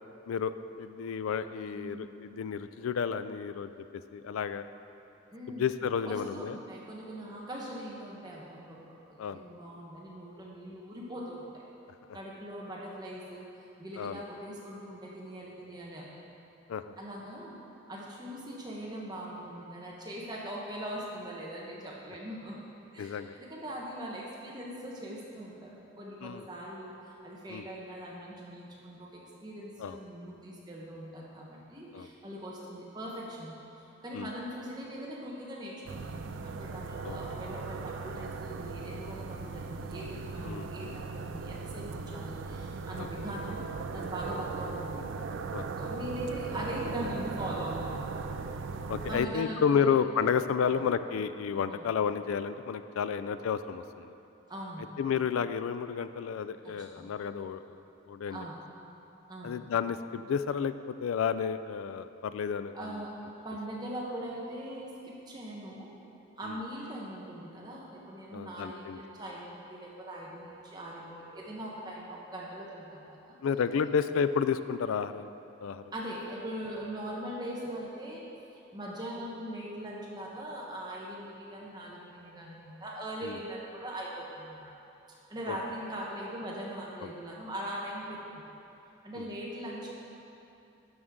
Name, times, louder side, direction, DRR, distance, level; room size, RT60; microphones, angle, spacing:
voice 1, 0.3-3.9 4.1-4.7 5.5-6.6 9.2-9.4 14.0-14.2 16.7-16.9 23.0-23.3 26.2-26.5 27.5-27.6 29.8-30.0 31.9-32.1 34.1-34.3 37.0-37.2 40.4-41.0 43.0-43.1 45.5-45.7 48.9-54.1 55.0-57.6 58.1-58.5 59.4-63.0 66.5-66.6 68.3-69.0 73.4-75.3 75.6-75.8 83.2-83.4 85.5-85.6, left 7 dB, 90° left, 12 dB, 0.3 m, -31 dB
voice 2, 1.7-2.1 5.3-5.7 6.0-8.8 9.1-11.5 12.1-13.5 13.8-16.1 17.0-17.6 17.9-22.6 22.9-33.5 34.0-43.6 43.9-45.1 45.8-48.0 49.0-49.9 50.2-50.3 50.6-50.9 51.7-51.9 53.0-53.3 54.5-54.9 56.6-57.2 58.3-58.6 59.3-59.6 62.7-63.1 63.4-65.9 66.4-73.4 75.9-78.2 78.7-84.7 85.1-88.4 89.0-89.9, right 1 dB, 20° right, -4 dB, 1.1 m, -41 dB
sound 1, 35.9-49.3, right 4 dB, 70° right, 0.4 m, -38 dB
11.0 x 6.4 x 3.7 m, 2.8 s
head